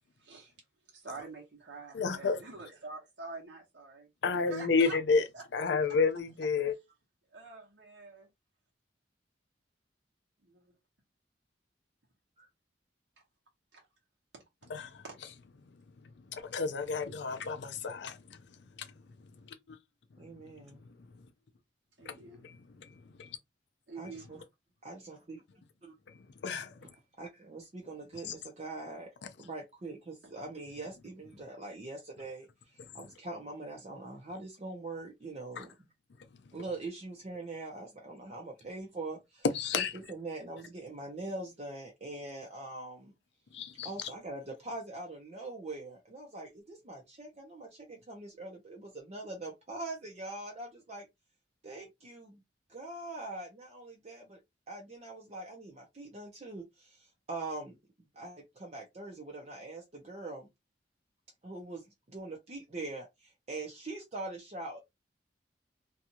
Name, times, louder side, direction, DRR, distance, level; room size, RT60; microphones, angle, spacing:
voice 1, 0.2-0.5 0.9-5.0 5.3-5.4 5.9-6.0 6.6-6.7 7.3-8.3 10.4-10.7 13.7-13.8 14.3-14.4 15.0-15.1 22.0-22.4 23.9-24.3, right 3 dB, 85° right, 1.1 m, -47 dB
voice 2, 1.9-2.4 4.2-5.2 5.5-6.8 14.7-15.0 16.0-18.4 18.8-18.9 19.4-19.8 22.0-22.2 22.4-23.4 26.1-26.8 35.6-35.7 39.5-39.9 43.5-44.1, left 4 dB, 75° left, 0.5 m, -31 dB
voice 3, 20.2-20.8 24.0-24.4 24.8-25.4 25.8-25.9 27.2-29.1 29.4-35.9 36.5-39.4 39.8-43.1 43.8-51.1 51.6-52.4 52.7-54.4 54.7-57.8 58.1-60.5 61.4-64.8, right 2 dB, 40° right, 0.6 m, -43 dB
2.6 x 2.4 x 2.8 m
head